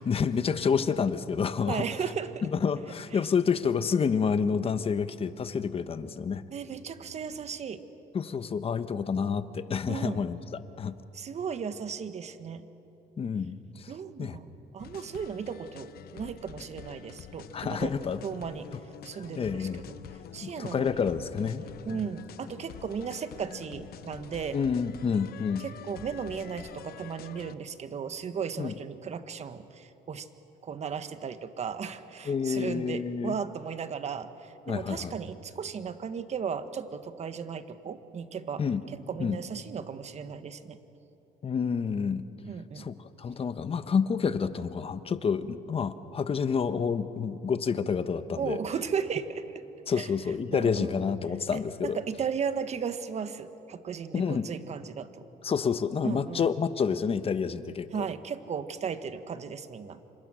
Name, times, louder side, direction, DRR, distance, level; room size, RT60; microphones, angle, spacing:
voice 1, 0.0-1.9 2.4-6.4 8.1-11.0 13.2-13.9 14.2-14.4 17.5-18.2 19.4-19.8 20.4-22.0 24.5-25.6 28.6-28.7 32.2-33.3 34.7-35.1 38.6-38.8 39.2-39.4 41.4-42.3 42.8-48.6 49.9-52.0 54.1-54.5 55.4-58.1, left 6 dB, 35° left, 12 dB, 1.1 m, -29 dB
voice 2, 1.7-2.5 6.5-7.9 9.9-10.2 11.1-12.7 13.9-18.0 18.2-18.7 19.0-20.0 20.3-20.9 21.9-24.6 25.6-30.3 30.6-38.6 39.1-40.8 42.5-42.9 48.4-49.6 50.0-50.1 50.5-50.9 51.5-55.2 56.0-56.4 57.9-60.0, right 6 dB, 40° right, 11 dB, 1.4 m, -35 dB
sound 1, 14.8-27.5, left 10 dB, 65° left, 1.0 m, -47 dB
29.0 x 26.5 x 6.3 m, 3.0 s
cardioid pair, 110°, 17 cm